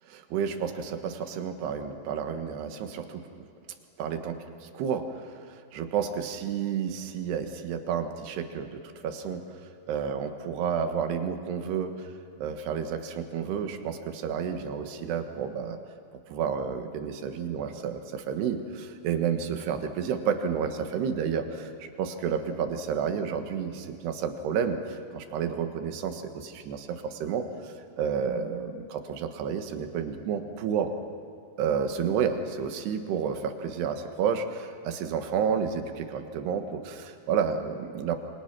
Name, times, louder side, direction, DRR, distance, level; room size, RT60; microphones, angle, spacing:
voice 1, 0.1-3.5 4.0-12.1 12.4-15.8 16.3-30.9 31.6-38.2, right 7 dB, 85° right, 6 dB, 3.6 m, -31 dB
28.5 x 24.0 x 6.0 m, 2.6 s
omnidirectional pair, 4.6 m